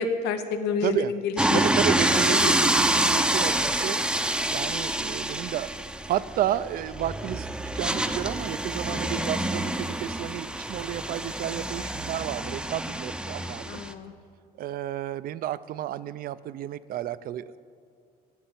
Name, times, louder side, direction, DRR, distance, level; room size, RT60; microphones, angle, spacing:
voice 1, 0.0-1.6 2.1-2.5 8.9-9.2 13.7-14.1, left 5 dB, 90° left, 9 dB, 0.8 m, -29 dB
voice 2, 0.8-1.1 1.5-4.0 4.5-7.5 7.7-13.8 14.6-17.6, right 12 dB, 60° right, 16 dB, 0.5 m, -31 dB
sound 1, 1.4-13.9, right 1 dB, 5° right, 0.6 m, -27 dB
12.0 x 6.8 x 8.9 m, 2.3 s
cardioid pair, 110°, 17 cm